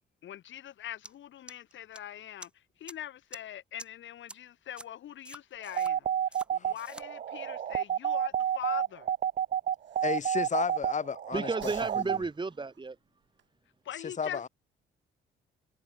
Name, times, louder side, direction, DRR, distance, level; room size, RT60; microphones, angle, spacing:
voice 1, 0.2-9.1 13.9-14.5, left 11 dB, 70° left, 3.8 m, -43 dB
sound 1, 1.0-1.1 1.5-2.0 2.4-2.5 2.9-3.0 3.3-3.4 3.8-3.9 4.3-4.4 4.8-4.9 5.2-5.9 6.3-6.5 6.7-7.0, right 1 dB, 5° right, 3.1 m, -46 dB
sound 2, 5.7-12.2, right 9 dB, 45° right, 0.5 m, -30 dB
Breathing, 8.4-11.2 11.5-13.5, right 10 dB, 65° right, 4.1 m, -57 dB
voice 2, 10.0-11.7 14.0-14.5, left 6 dB, 40° left, 2.2 m, -33 dB
voice 3, 11.3-13.0, right 3 dB, 25° right, 2.6 m, -33 dB
cardioid pair, 90°, 20 cm